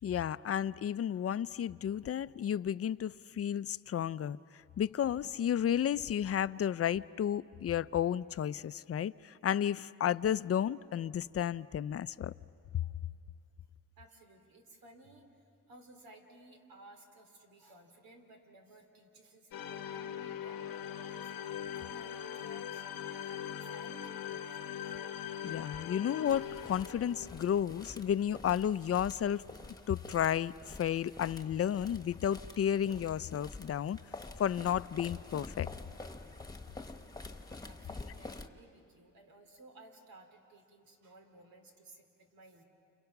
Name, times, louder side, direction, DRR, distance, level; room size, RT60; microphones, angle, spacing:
voice 1, 0.0-4.4 4.8-12.3 25.4-29.4 29.9-34.0 34.4-35.7, left 9 dB, 45° left, 16 dB, 0.5 m, -32 dB
voice 2, 14.0-25.0 37.6-42.6, right 2 dB, 90° right, 4 dB, 3.0 m, -58 dB
sound 1, 19.5-28.0, left 9 dB, 90° left, 1.1 m, -41 dB
sound 2, 26.3-38.5, left 2 dB, 10° left, 1.3 m, -48 dB
30.0 x 29.5 x 5.9 m, 2.6 s
cardioid pair, 85°, 34 cm